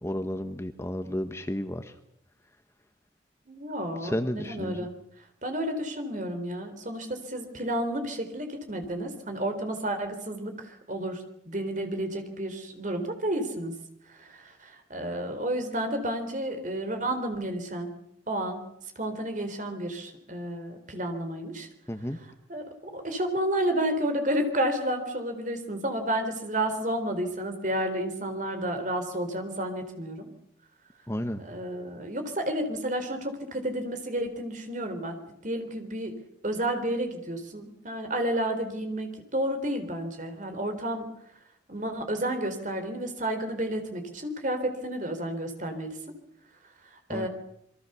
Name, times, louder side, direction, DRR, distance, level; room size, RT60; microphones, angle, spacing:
voice 1, 0.0-1.9 4.0-4.9 21.9-22.2 31.1-31.4 47.1-47.3, equal, 15° left, 8 dB, 1.1 m, -32 dB
voice 2, 3.5-4.9 5.4-13.7 14.1-17.9 18.3-18.6 19.0-21.7 22.5-30.3 31.4-36.2 36.4-41.1 41.7-46.1 46.9-47.3, right 1 dB, 40° right, 7 dB, 4.0 m, -31 dB
27.5 x 23.0 x 7.0 m, 0.77 s
head